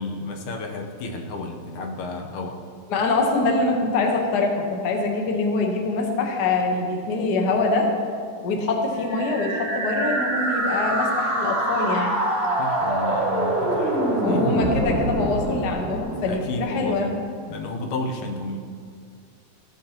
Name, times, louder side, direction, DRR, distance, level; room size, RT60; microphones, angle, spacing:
voice 1, 0.0-2.6 12.6-14.6 16.3-17.1 17.5-18.6, left 2 dB, 85° left, 2 dB, 2.4 m, -31 dB
voice 2, 2.9-7.9 8.4-12.1 14.2-17.1, left 3 dB, 60° left, 1 dB, 1.1 m, -24 dB
sound 1, 9.0-16.9, right 1 dB, 75° right, 0.5 m, -25 dB
15.0 x 7.7 x 2.9 m, 2.2 s
omnidirectional pair, 3.4 m